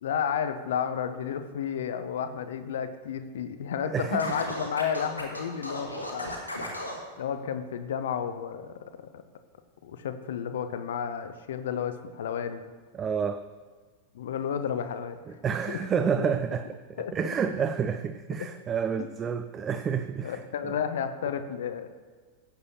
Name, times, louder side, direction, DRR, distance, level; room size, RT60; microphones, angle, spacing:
voice 1, 0.0-6.4 7.2-9.2 9.8-12.6 14.1-15.2 15.7-15.8 16.2-16.3 17.0-17.1 20.2-21.9, left 8 dB, 60° left, 9 dB, 0.8 m, -32 dB
Scratching (performance technique), 4.2-7.0, left 1 dB, 85° left, 2.0 m, -35 dB
voice 2, 12.9-13.4 15.3-20.8, right 7 dB, 25° right, 10 dB, 0.5 m, -29 dB
16.0 x 7.9 x 2.9 m, 1.5 s
figure-of-eight pair, 90°, 0 cm